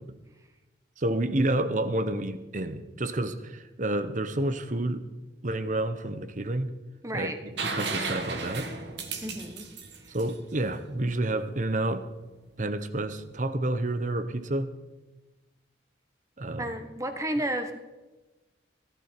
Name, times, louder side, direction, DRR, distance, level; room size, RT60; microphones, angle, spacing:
voice 1, 1.0-5.1 5.4-6.7 7.1-8.7 10.1-12.1 12.6-14.7 16.4-16.7, right 1 dB, 40° right, 11 dB, 0.9 m, -29 dB
voice 2, 7.0-7.3 9.2-9.6 10.0-10.1 16.6-17.8, right 1 dB, 15° right, 7 dB, 1.2 m, -32 dB
sound 1, 7.6-11.3 13.1-13.2, right 4 dB, 70° right, 1.8 m, -34 dB
18.0 x 12.0 x 4.5 m, 1.1 s
head